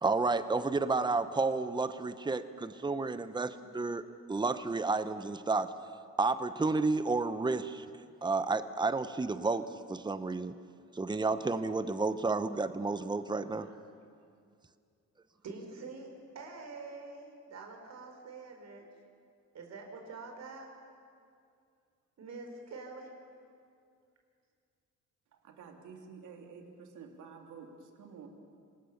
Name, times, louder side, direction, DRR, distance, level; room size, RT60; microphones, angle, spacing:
voice 1, 0.0-4.0 4.3-5.7 6.2-7.9 8.2-10.5 10.9-13.7, right 3 dB, 15° right, 12 dB, 0.9 m, -31 dB
voice 2, 15.4-18.9 19.5-20.7 22.2-23.2 28.1-28.3, right 3 dB, 60° right, 3 dB, 4.7 m, -46 dB
voice 3, 25.4-28.3, right 5 dB, 75° right, 3 dB, 3.2 m, -50 dB
26.5 x 19.0 x 7.1 m, 2.3 s
cardioid pair, 90°, 30 cm